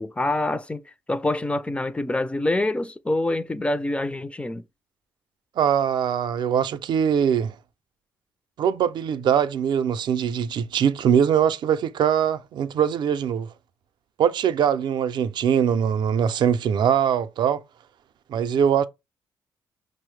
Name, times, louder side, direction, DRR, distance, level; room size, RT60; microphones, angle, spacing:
voice 1, 0.0-4.6, left 2 dB, 15° left, 0.3 m, -26 dB
voice 2, 5.6-7.6 8.6-13.5 14.2-17.6 18.3-18.8, right 8 dB, 60° right, 0.4 m, -22 dB
5.4 x 2.0 x 3.2 m
supercardioid pair, 70°, 8 cm